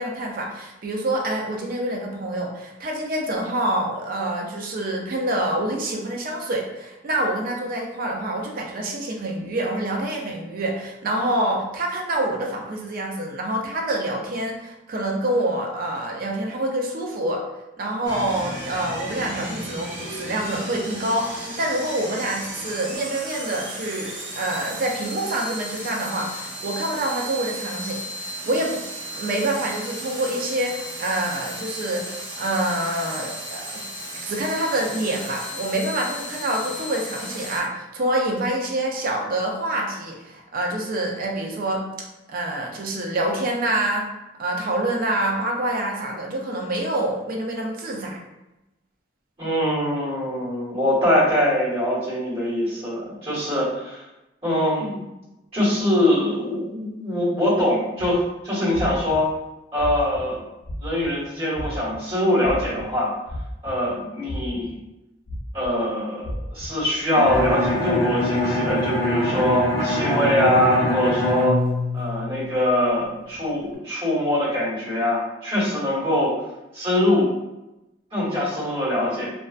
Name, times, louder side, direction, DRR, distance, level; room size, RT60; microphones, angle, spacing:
voice 1, 0.0-17.5 17.8-28.8 29.1-33.8 34.2-41.8 42.3-44.1 44.4-48.2, right 1 dB, 50° right, 0 dB, 0.5 m, -26 dB
sound 1, 18.0-37.6, equal, 90° right, 0.8 m, -35 dB
voice 2, 49.4-54.0 54.4-55.0 55.5-59.3 59.7-60.4 60.8-63.1 63.6-64.7 65.5-71.6 71.9-76.3 76.7-77.3 78.1-79.3, left 1 dB, 30° right, -9 dB, 1.3 m, -23 dB
sound 2, 58.0-58.2 58.7-59.2 59.8-60.2 60.6-61.1 61.5-62.0 62.4-62.9 63.3-63.9 64.3-64.7 65.3-65.7 66.2-66.7 67.3-67.7, equal, 50° left, 0.4 m, -33 dB
Bowed string instrument, 67.1-72.8, left 1 dB, 30° left, 0.9 m, -24 dB
2.3 x 2.2 x 2.4 m, 0.96 s
head